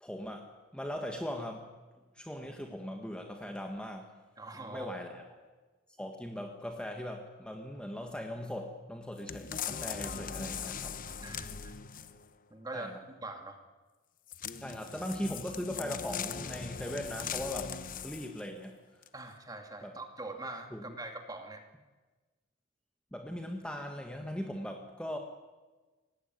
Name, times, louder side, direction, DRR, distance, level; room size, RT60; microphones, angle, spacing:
voice 1, 0.0-1.7 2.1-4.1 4.5-5.5 6.0-11.0 12.7-13.0 14.6-19.0 19.8-19.9 20.7-21.0 23.1-25.2, equal, 5° left, 3 dB, 1.6 m, -39 dB
voice 2, 4.4-4.9 11.2-11.7 12.5-12.9 13.2-13.6 19.1-21.6, right 2 dB, 20° right, 5 dB, 2.4 m, -43 dB
sound 1, 9.3-12.3 14.3-18.5 19.0-19.1, left 7 dB, 40° left, 1.0 m, -40 dB
25.5 x 19.0 x 9.4 m, 1.3 s
head